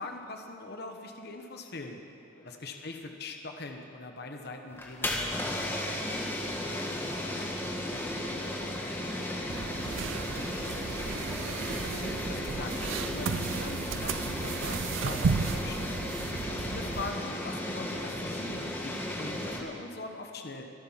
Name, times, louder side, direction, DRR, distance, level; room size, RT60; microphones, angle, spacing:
voice 1, 0.0-2.0 2.4-6.0 11.7-12.8 13.1-15.9 16.5-20.6, left 3 dB, 50° left, 4 dB, 1.1 m, -42 dB
sound 1, 4.7-19.6, left 1 dB, 10° left, 1.4 m, -35 dB
voice 2, 6.6-10.6, left 1 dB, 80° left, -10 dB, 3.8 m, -54 dB
sound 2, 9.5-17.1, right 5 dB, 65° right, 0.5 m, -34 dB
24.5 x 8.8 x 5.7 m, 2.7 s
head